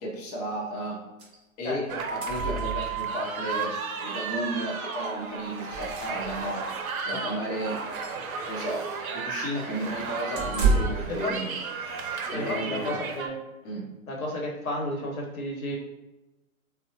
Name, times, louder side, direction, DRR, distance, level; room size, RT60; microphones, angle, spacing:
voice 1, 0.0-1.0 1.6-6.6 7.0-7.8 8.5-8.9 9.1-11.5 12.3-13.0 13.6-13.9, right 1 dB, 20° left, -4 dB, 0.7 m, -33 dB
sound 1, 1.2-1.4 1.7-1.8 1.9-3.2 4.5-4.6 4.9-5.1 5.6-6.5 7.0-7.2 7.7-8.2 10.3-11.2, right 3 dB, 20° right, 0.4 m, -29 dB
voice 2, 1.6-2.0 7.1-7.2 11.1-11.5 12.3-13.3 14.1-15.8, left 1 dB, 85° left, -1 dB, 1.0 m, -32 dB
sound 2, 1.9-13.3, right 5 dB, 80° right, 0.6 m, -34 dB
3.5 x 2.0 x 2.7 m, 1.0 s
hypercardioid pair, 125°, 42 cm